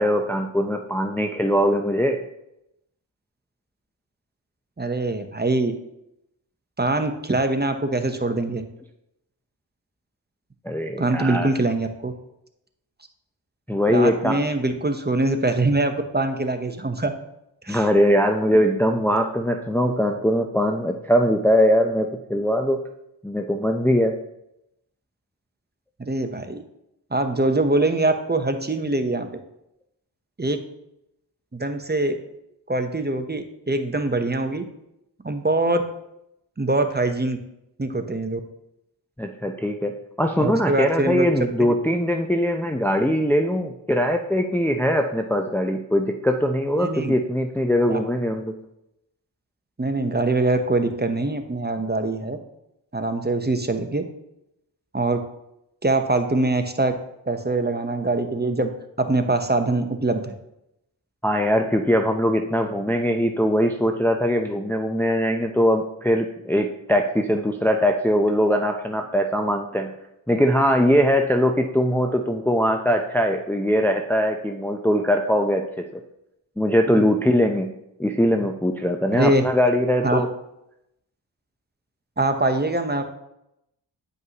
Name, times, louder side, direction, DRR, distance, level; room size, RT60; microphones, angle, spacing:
voice 1, 0.0-2.2 10.6-11.5 13.7-14.4 17.6-22.8 23.2-24.2 39.2-48.5 61.2-69.9 70.3-75.7 75.9-76.0 76.6-77.7 78.0-80.3, equal, 5° left, 4 dB, 0.5 m, -21 dB
voice 2, 4.8-5.7 6.8-8.6 11.0-12.1 13.9-17.1 17.7-17.9 26.0-26.6 27.1-29.4 30.4-30.6 31.5-32.2 32.7-34.6 35.2-35.8 36.6-37.4 37.8-38.4 40.4-41.3 41.6-41.7 46.8-47.1 47.9-48.0 49.8-52.4 52.9-54.0 54.9-55.2 55.8-56.9 57.3-58.7 59.0-60.3 77.0-77.1 79.1-79.4 80.0-80.2 82.2-83.0, right 2 dB, 20° right, 7 dB, 0.8 m, -23 dB
9.4 x 5.3 x 2.9 m, 0.82 s
cardioid pair, 45°, 45 cm